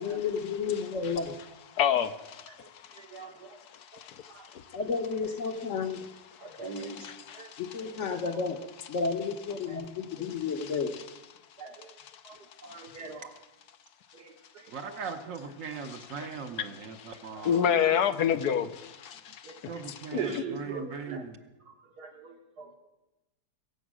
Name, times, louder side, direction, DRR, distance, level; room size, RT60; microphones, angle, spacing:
voice 1, 0.0-1.3 4.7-6.0 7.6-8.6 8.9-10.9, left 5 dB, 50° left, 1.2 m, -31 dB
voice 2, 1.7-3.2 3.7-4.8 6.4-7.6 12.0-12.1 12.7-12.9 15.8-16.0 16.6-16.7 16.9-17.1 17.4-20.4, left 8 dB, 75° left, 1.3 m, -30 dB
voice 3, 3.0-3.6 4.3-4.5 6.4-7.1 7.3-7.5 7.8-8.2 10.2-10.3 11.6-11.9 12.3-12.4 12.6-13.3 14.1-14.6 14.9-15.0 17.3-17.4 19.4-19.6 20.1-21.2 22.0-22.8, right 5 dB, 75° right, 2.2 m, -41 dB
voice 4, 14.7-17.7 18.4-18.6 19.7-21.4, right 5 dB, 55° right, 1.3 m, -39 dB
22.0 x 7.9 x 6.2 m
omnidirectional pair, 1.7 m